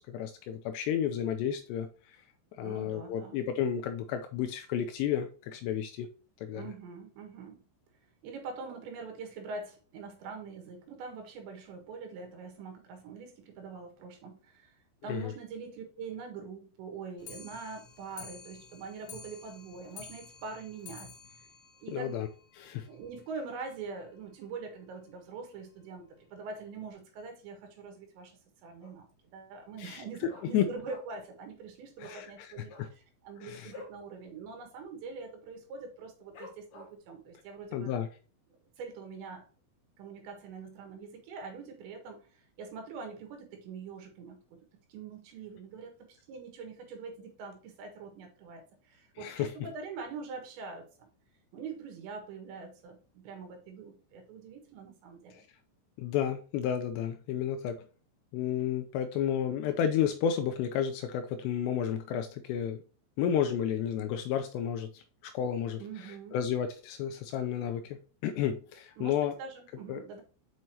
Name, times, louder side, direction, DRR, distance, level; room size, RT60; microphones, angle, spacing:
voice 1, 0.0-2.2 2.6-6.1 6.4-6.7 15.1-15.3 21.9-22.3 22.5-22.9 29.8-30.0 30.5-30.7 32.0-32.5 32.8-32.9 33.4-33.7 37.7-38.1 49.2-49.5 56.0-57.8 58.3-62.8 63.2-68.0 68.2-69.3 69.9-70.0, left 9 dB, 90° left, 7 dB, 2.4 m, -32 dB
voice 2, 2.6-3.4 6.5-7.6 8.2-14.8 15.0-21.1 21.8-22.2 22.9-29.1 29.3-38.0 38.8-39.5 40.0-44.6 44.9-51.1 51.5-55.4 65.8-66.4 69.0-70.2, right 4 dB, 70° right, 4 dB, 3.5 m, -44 dB
Clock, 17.2-22.7 23.0-23.1 23.4-23.5 23.8-23.9 24.2-24.3 25.0-25.1 25.8-25.9 26.5-26.6, left 5 dB, 65° left, 2.0 m, -50 dB
Dog, 28.8-29.2 29.5-29.6 29.9-31.3 31.6-31.7 32.0-32.2 32.6-34.0 34.4-34.5 34.8-35.2 35.7-35.8 36.3-37.1 37.6-37.7, left 3 dB, 45° left, 3.0 m, -50 dB
7.7 x 5.5 x 2.9 m, 0.38 s
omnidirectional pair, 5.6 m